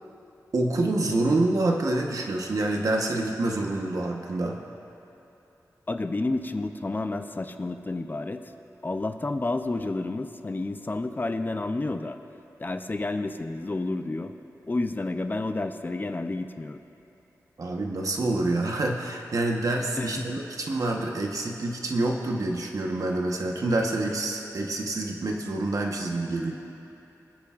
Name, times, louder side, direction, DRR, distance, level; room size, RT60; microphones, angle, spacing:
voice 1, 0.5-4.6 17.6-26.5, right 2 dB, 65° right, 1 dB, 1.1 m, -27 dB
voice 2, 5.9-8.4 8.8-12.2 12.6-14.3 14.7-16.8 20.0-20.4, left 2 dB, 30° left, 7 dB, 0.5 m, -30 dB
25.0 x 8.5 x 2.5 m, 3.0 s
wide cardioid pair, 85°, 6 cm